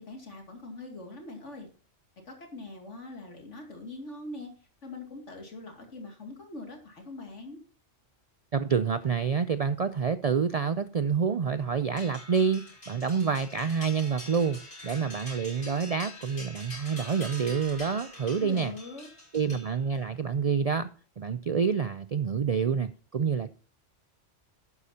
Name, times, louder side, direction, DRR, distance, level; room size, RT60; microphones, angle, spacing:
voice 1, 0.1-1.7 2.3-4.5 4.8-7.6 18.3-19.1, left 2 dB, 75° left, 2.8 m, -42 dB
voice 2, 8.5-18.7 19.3-20.9 21.2-23.5, right 6 dB, 55° right, 0.4 m, -28 dB
sound 1, 12.0-20.1, left 1 dB, 50° left, 6.3 m, -45 dB
11.5 x 9.8 x 2.8 m
omnidirectional pair, 1.2 m